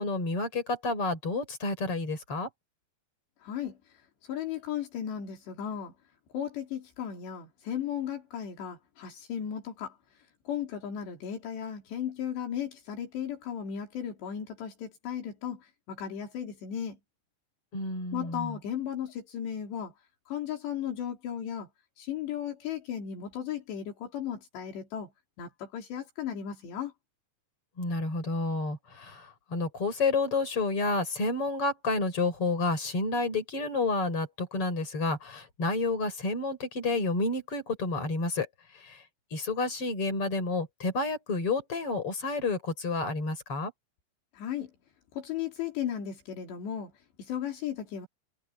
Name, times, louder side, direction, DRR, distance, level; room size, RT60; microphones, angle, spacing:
voice 1, 0.0-2.5 17.7-18.6 27.8-38.5 38.7-39.0 39.3-43.7, left 3 dB, 30° left, 6.8 m, -30 dB
voice 2, 3.4-3.8 4.2-5.9 6.3-10.0 10.5-17.0 18.1-19.9 20.3-21.7 22.0-25.1 25.4-26.9 44.3-44.7 45.1-46.9 47.2-48.1, left 9 dB, 75° left, 5.4 m, -35 dB
omnidirectional pair, 5.0 m